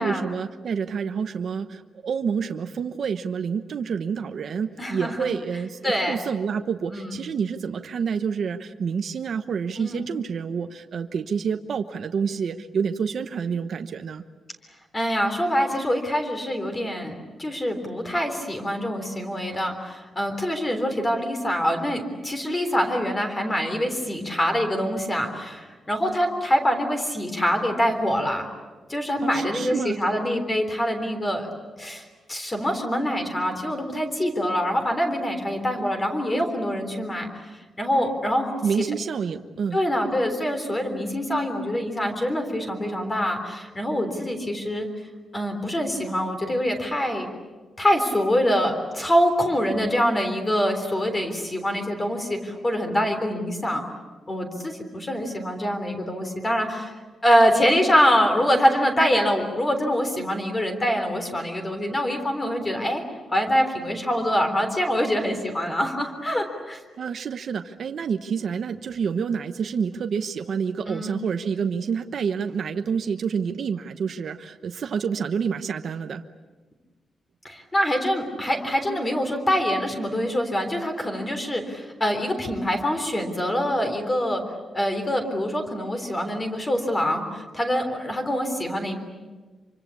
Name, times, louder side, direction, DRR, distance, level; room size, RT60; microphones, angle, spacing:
voice 1, 0.0-14.2 29.2-30.0 38.6-39.8 67.0-76.2, right 6 dB, 50° right, 7 dB, 1.0 m, -28 dB
voice 2, 4.8-5.3 5.8-6.2 6.9-7.2 9.8-10.1 14.9-28.5 28.9-31.5 31.8-37.3 37.8-38.8 39.7-44.9 45.3-47.3 47.8-53.8 54.3-56.9 57.2-63.0 63.3-66.8 70.9-71.2 77.4-84.4 84.7-89.0, equal, 15° left, 5 dB, 3.6 m, -25 dB
26.0 x 25.0 x 8.4 m, 1.3 s
wide cardioid pair, 180°, 0 cm